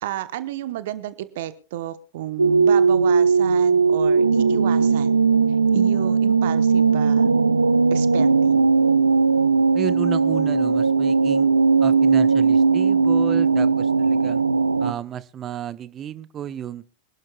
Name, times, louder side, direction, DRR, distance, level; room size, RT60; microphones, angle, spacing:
voice 1, 0.0-5.2 5.7-7.3 7.9-8.8, right 13 dB, 55° right, 13 dB, 1.0 m, -32 dB
sound 1, 2.4-14.9, right 5 dB, 80° right, 0.6 m, -18 dB
voice 2, 9.7-11.5 11.8-14.4 14.8-16.8, right 9 dB, 25° right, 16 dB, 0.8 m, -32 dB
25.5 x 12.0 x 2.3 m, 0.33 s
figure-of-eight pair, 90°, 0 cm